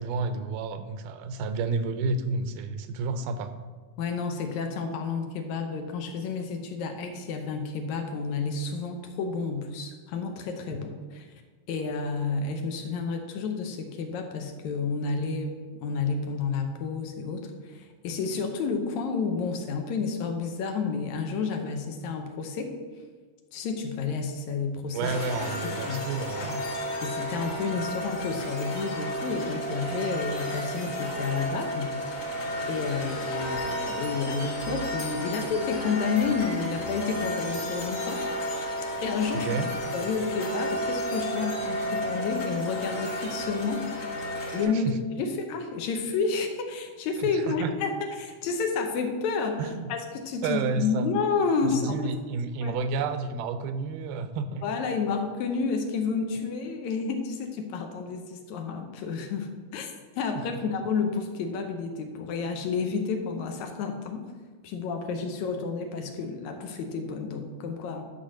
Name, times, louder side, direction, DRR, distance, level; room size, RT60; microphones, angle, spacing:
voice 1, 0.0-3.5 24.9-26.5 39.3-39.7 44.6-44.9 47.2-47.7 49.6-49.9 50.4-51.1 51.7-54.6 60.4-60.6, right 4 dB, 85° right, 10 dB, 2.2 m, -30 dB
voice 2, 4.0-11.3 11.7-22.8 23.5-25.1 25.4-26.0 26.4-26.6 27.0-32.3 32.7-38.2 39.0-39.6 39.9-43.9 44.5-52.2 52.6-52.8 54.6-59.9 60.2-64.3 64.6-68.0, left 5 dB, 75° left, 5 dB, 2.0 m, -30 dB
sound 1, 25.0-44.6, equal, 50° left, 2.7 m, -32 dB
10.5 x 4.2 x 6.2 m, 1.5 s
omnidirectional pair, 3.7 m